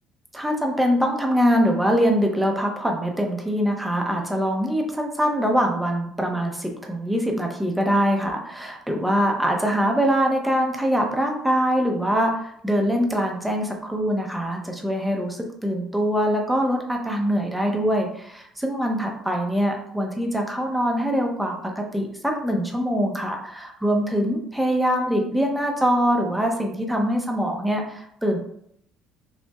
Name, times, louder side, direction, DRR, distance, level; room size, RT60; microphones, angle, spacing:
voice 1, 0.3-28.4, equal, 5° right, 1 dB, 0.5 m, -23 dB
5.2 x 2.0 x 2.3 m, 0.72 s
cardioid pair, 165°, 0 cm